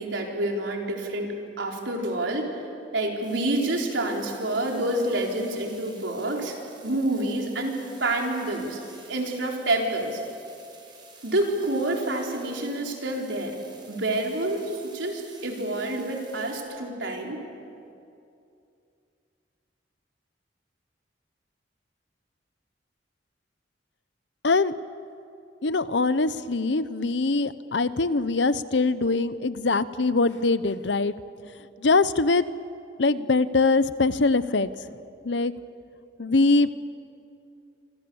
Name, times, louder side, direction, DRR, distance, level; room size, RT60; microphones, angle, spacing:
voice 1, 0.0-2.6 2.9-6.6 6.8-8.8 9.1-10.2 11.2-13.6 13.9-17.4, right 1 dB, 85° right, 0 dB, 4.2 m, -28 dB
sound 1, 3.2-16.6, right 4 dB, 25° right, 5.3 m, -51 dB
voice 2, 25.6-31.1 31.8-32.4 33.0-34.7 35.2-35.5 36.2-36.7, left 3 dB, 70° left, 14 dB, 0.8 m, -22 dB
27.5 x 26.0 x 7.1 m, 2.6 s
head